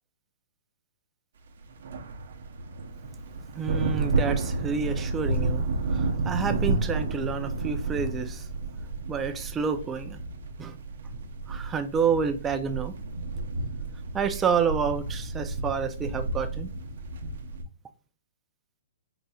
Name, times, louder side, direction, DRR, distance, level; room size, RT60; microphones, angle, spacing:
sound 1, 1.6-17.6, right 3 dB, 65° right, 0.7 m, -31 dB
voice 1, 3.6-8.5 9.1-10.2 10.6-10.8 11.5-12.9 14.1-16.7, right 6 dB, 15° right, 0.4 m, -29 dB
4.0 x 3.9 x 2.3 m
hypercardioid pair, 150°, 0 cm